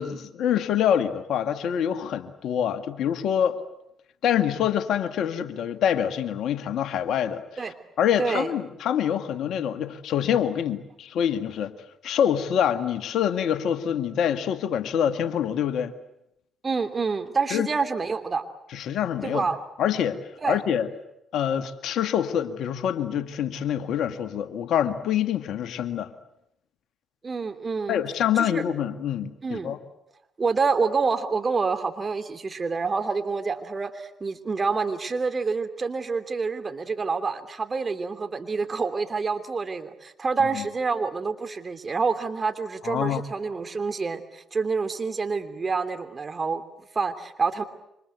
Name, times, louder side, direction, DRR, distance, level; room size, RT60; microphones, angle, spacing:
voice 1, 0.0-3.6 4.2-11.7 12.0-15.9 17.5-17.7 18.7-19.5 19.8-20.2 20.5-20.9 21.3-26.1 27.9-29.8 40.5-40.7 42.8-43.2, left 9 dB, 70° left, 10 dB, 1.8 m, -26 dB
voice 2, 8.2-8.5 16.6-18.4 19.2-19.6 20.4-20.6 27.2-28.0 28.3-28.6 29.4-29.8 30.4-46.6 46.9-47.6, right 4 dB, 40° right, 9 dB, 3.1 m, -27 dB
28.0 x 25.5 x 8.2 m, 0.80 s
hypercardioid pair, 50°, 0 cm